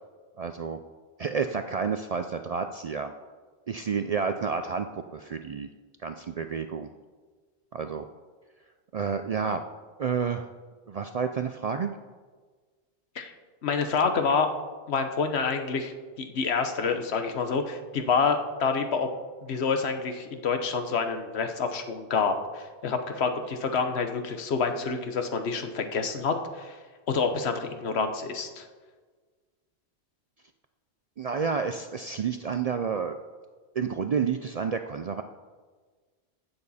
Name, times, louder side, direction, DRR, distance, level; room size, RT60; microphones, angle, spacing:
voice 1, 0.4-0.8 1.2-3.1 3.7-5.7 6.0-6.9 7.7-8.0 8.9-9.6 10.0-10.5 10.9-11.9 31.2-33.2 33.7-35.2, right 6 dB, 55° right, 7 dB, 0.4 m, -30 dB
voice 2, 13.6-14.5 14.9-15.9 16.2-19.1 19.4-26.8 27.1-28.7, left 5 dB, 80° left, 7 dB, 1.2 m, -27 dB
15.5 x 7.1 x 4.2 m, 1.4 s
omnidirectional pair, 1.1 m